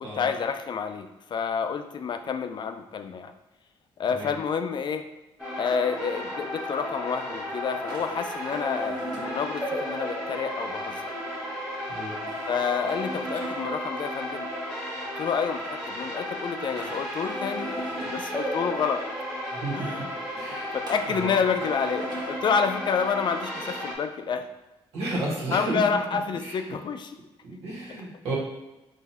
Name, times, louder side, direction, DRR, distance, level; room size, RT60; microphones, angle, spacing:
voice 1, 0.0-3.3 4.0-5.0 5.6-11.1 12.5-14.5 15.2-19.0 19.7-20.1 20.7-24.5 25.1-25.2 25.5-27.2 27.7-27.8, left 6 dB, 50° left, 8 dB, 0.4 m, -29 dB
sound 1, 5.4-24.0, equal, 5° right, 1.3 m, -33 dB
sound 2, 7.8-9.3 12.3-13.6 16.7-18.1 20.9-22.4, right 2 dB, 40° right, 1.1 m, -45 dB
voice 2, 11.9-12.2 19.5-20.1 20.3-20.7 21.1-21.4 24.9-25.8 26.4-26.5 27.4-28.3, right 2 dB, 90° right, -4 dB, 1.5 m, -32 dB
3.9 x 2.6 x 4.1 m, 1.0 s
cardioid pair, 85°, 10 cm